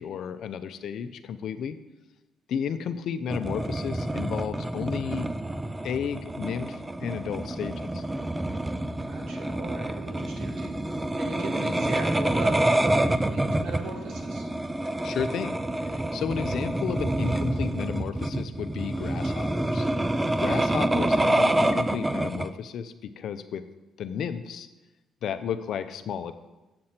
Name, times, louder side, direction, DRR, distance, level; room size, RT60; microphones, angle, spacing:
voice 1, 0.0-1.8 2.5-5.3 5.8-8.0 15.0-19.9 20.4-23.6 24.0-24.7 25.2-26.3, left 7 dB, 70° left, 11 dB, 0.6 m, -33 dB
sound 1, 3.3-22.5, right 1 dB, 15° right, 0.4 m, -27 dB
voice 2, 9.0-14.5, right 3 dB, 80° right, 1 dB, 1.9 m, -39 dB
7.6 x 7.4 x 4.3 m, 1.1 s
cardioid pair, 90°, 0 cm